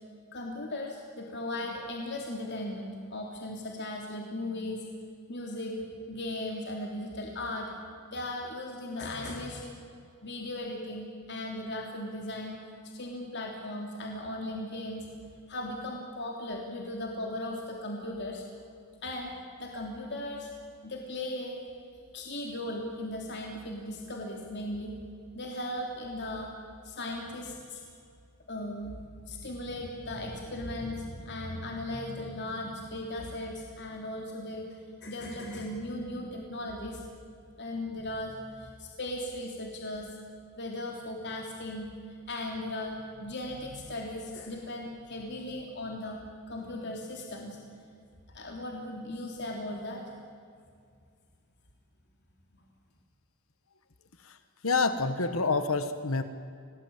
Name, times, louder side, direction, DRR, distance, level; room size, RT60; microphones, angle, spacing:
voice 1, 0.3-4.9 5.3-7.7 8.1-9.8 10.2-12.6 12.9-15.1 15.5-18.4 19.0-19.3 19.6-20.5 20.8-21.6 22.1-24.9 25.3-26.5 26.8-27.8 28.5-29.0 29.3-34.7 35.0-37.0 37.6-40.1 40.6-41.9 42.3-46.2 46.5-47.6 48.3-50.0, left 1 dB, 50° left, 0 dB, 3.3 m, -37 dB
voice 2, 54.6-56.2, left 3 dB, 65° left, 10 dB, 1.3 m, -27 dB
28.0 x 19.0 x 8.9 m, 2.3 s
head